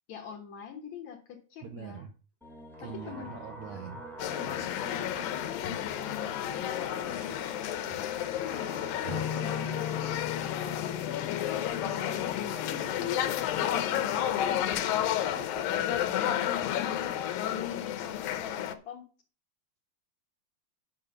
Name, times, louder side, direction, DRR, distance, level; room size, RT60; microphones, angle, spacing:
voice 1, 0.1-2.0 2.8-3.4 4.3-10.4 10.8-11.6 12.0-12.6 13.3-15.1 16.2-19.0, left 7 dB, 60° left, 2 dB, 2.1 m, -44 dB
voice 2, 1.6-2.1 2.8-4.0 15.2-16.2, right 7 dB, 70° right, 5 dB, 1.7 m, -44 dB
sound 1, 2.4-13.1, left 1 dB, 5° left, 0.4 m, -47 dB
sound 2, 4.2-18.8, left 11 dB, 75° left, 2.5 m, -31 dB
sound 3, 9.0-16.6, left 8 dB, 90° right, 0.9 m, -41 dB
8.6 x 5.9 x 6.6 m, 0.37 s
omnidirectional pair, 4.3 m